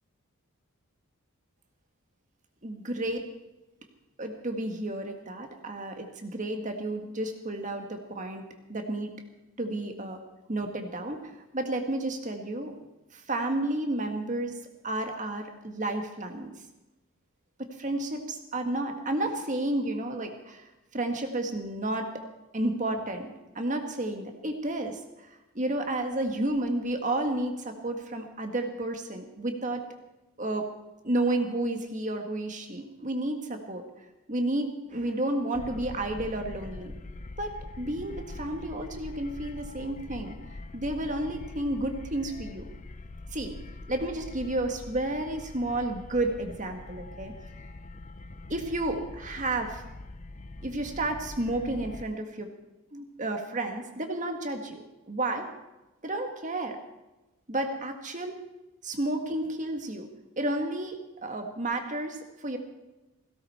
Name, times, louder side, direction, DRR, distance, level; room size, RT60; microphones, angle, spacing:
voice 1, 2.6-3.3 4.2-8.4 8.7-9.1 9.6-10.2 10.5-12.7 13.1-14.6 14.8-16.5 17.6-22.1 22.5-29.8 30.4-30.7 31.0-33.8 34.3-36.9 37.4-40.3 40.7-42.7 43.3-43.5 43.9-47.3 48.5-49.8 50.6-52.5 52.9-55.5 56.0-56.8 57.5-58.4 58.8-60.1 60.4-62.6, right 1 dB, 35° right, 4 dB, 1.7 m, -31 dB
sound 1, 35.5-52.1, left 2 dB, 35° left, 0.6 m, -43 dB
17.0 x 17.0 x 4.4 m, 1.0 s
head